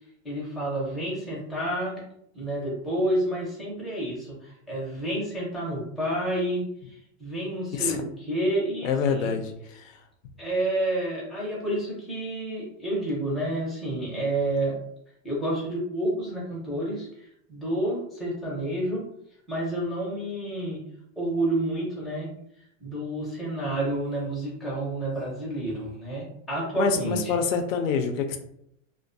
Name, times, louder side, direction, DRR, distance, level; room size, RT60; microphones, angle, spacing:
voice 1, 0.2-2.0 2.3-6.7 7.2-9.3 10.4-14.8 15.2-17.1 17.5-19.0 19.5-20.8 21.2-22.3 22.8-27.3, right 1 dB, ahead, -6 dB, 0.5 m, -29 dB
voice 2, 8.8-9.9 26.8-28.4, left 6 dB, 80° left, 5 dB, 0.6 m, -26 dB
2.3 x 2.2 x 2.5 m, 0.73 s
supercardioid pair, 140°, 39 cm